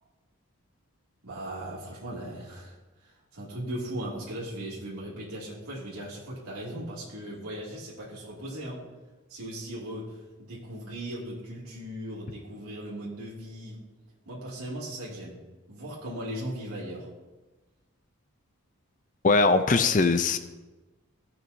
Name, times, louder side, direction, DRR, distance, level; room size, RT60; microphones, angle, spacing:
voice 1, 1.2-2.7 3.3-8.8 9.3-13.9 14.3-15.4 15.7-17.1, right 1 dB, 85° right, -7 dB, 2.5 m, -38 dB
voice 2, 19.2-20.4, left 3 dB, 35° left, 10 dB, 0.4 m, -21 dB
16.5 x 6.1 x 2.7 m, 1.2 s
head